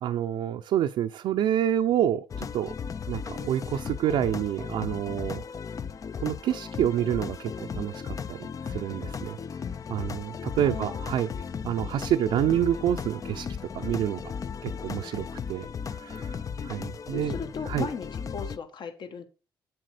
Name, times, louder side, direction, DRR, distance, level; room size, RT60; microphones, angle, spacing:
voice 1, 0.0-2.7 3.1-5.4 6.2-9.4 9.9-11.3 11.6-13.5 13.7-14.2 14.6-16.4 16.6-17.4 17.7-17.9, right 10 dB, 75° right, 5 dB, 0.6 m, -28 dB
sound 1, 2.3-18.6, left 6 dB, 40° left, 0.6 m, -36 dB
voice 2, 10.7-11.0 17.1-19.2, left 5 dB, 55° left, 8 dB, 1.5 m, -36 dB
7.8 x 7.7 x 5.0 m, 0.33 s
cardioid pair, 85°, 9 cm